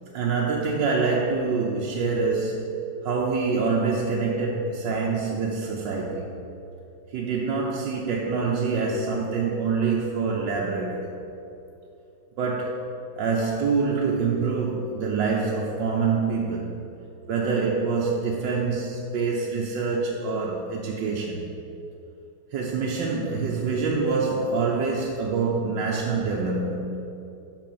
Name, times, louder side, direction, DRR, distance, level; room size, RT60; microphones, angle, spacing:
voice 1, 0.1-6.3 7.1-11.1 12.4-12.8 13.2-16.8 17.3-21.5 22.5-27.0, right 4 dB, 70° right, -2 dB, 1.3 m, -26 dB
5.9 x 5.8 x 6.9 m, 2.8 s
omnidirectional pair, 2.2 m